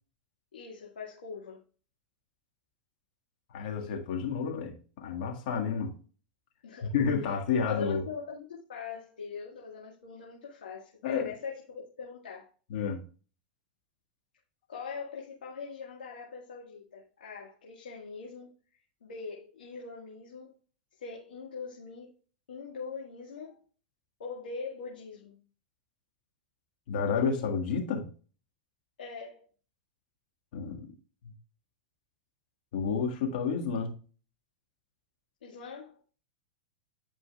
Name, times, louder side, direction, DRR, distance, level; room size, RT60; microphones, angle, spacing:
voice 1, 0.5-1.6 6.6-6.9 7.7-12.5 14.7-18.5 19.0-20.5 21.0-22.1 22.5-23.6 24.2-25.4 29.0-29.5 35.4-36.0, left 5 dB, 80° left, 1.8 m, -42 dB
voice 2, 3.5-5.9 6.8-8.1 11.0-11.3 12.7-13.0 26.9-28.1 30.5-30.9 32.7-34.0, left 6 dB, 65° left, 1.8 m, -30 dB
10.5 x 5.0 x 2.4 m
hypercardioid pair, 100°, 5 cm